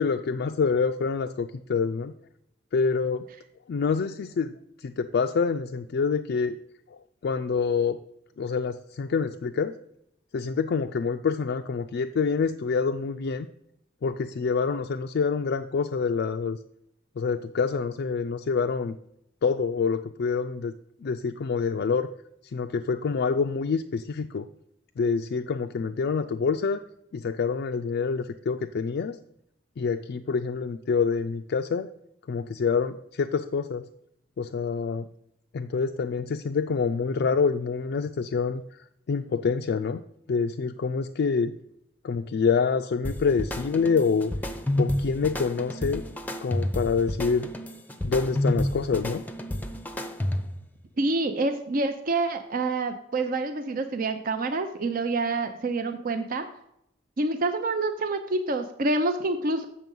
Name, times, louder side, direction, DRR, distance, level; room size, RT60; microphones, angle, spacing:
voice 1, 0.0-2.1 2.7-3.3 3.7-4.5 4.8-6.5 6.9-8.0 8.4-9.8 10.3-13.5 14.0-16.6 17.2-18.9 19.4-20.7 21.0-22.1 22.5-24.5 25.0-26.8 27.1-29.2 29.8-31.9 32.3-33.8 34.4-35.1 35.5-38.6 39.1-40.0 40.3-41.5 42.0-44.3 44.8-46.0 46.4-47.5 48.0-49.2, left 5 dB, 60° left, 5 dB, 0.4 m, -26 dB
sound 1, 43.0-50.7, left 1 dB, 10° left, 0.6 m, -30 dB
voice 2, 51.0-56.5 57.2-59.6, right 2 dB, 50° right, 7 dB, 0.6 m, -27 dB
7.6 x 6.3 x 5.3 m, 0.78 s
head